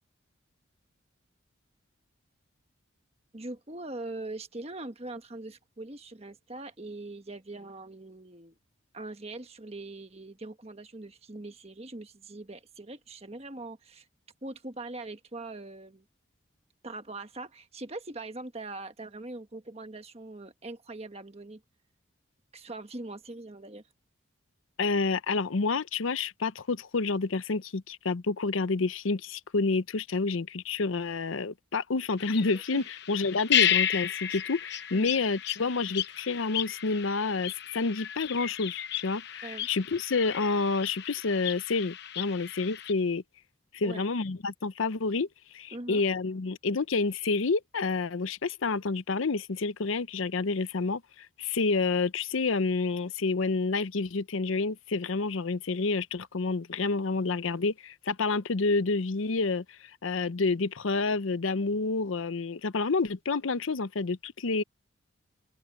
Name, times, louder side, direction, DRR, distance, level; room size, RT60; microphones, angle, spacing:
voice 1, 3.3-8.6 8.9-14.1 14.4-16.0 16.8-21.6 22.5-23.8 32.7-32.9 34.9-35.1 39.4-39.7 43.8-44.1 45.7-46.1, right 2 dB, 30° right, 1.4 m, -42 dB
voice 2, 24.8-43.2 43.7-45.3 45.5-64.6, left 4 dB, 80° left, 0.7 m, -29 dB
sound 1, 32.2-42.9, left 10 dB, 55° left, 0.9 m, -33 dB
open air
head